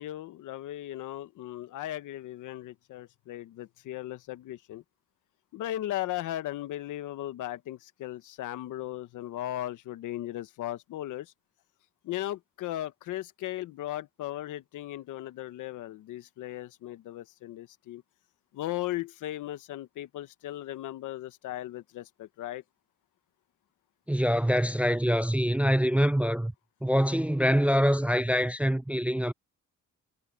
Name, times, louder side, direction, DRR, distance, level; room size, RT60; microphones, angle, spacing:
voice 1, 0.0-4.8 5.5-11.3 12.0-18.0 18.5-22.6, left 14 dB, 85° left, 1.3 m, -37 dB
voice 2, 24.1-26.5 26.8-29.3, equal, 5° right, 0.4 m, -25 dB
cardioid pair, 90°, 30 cm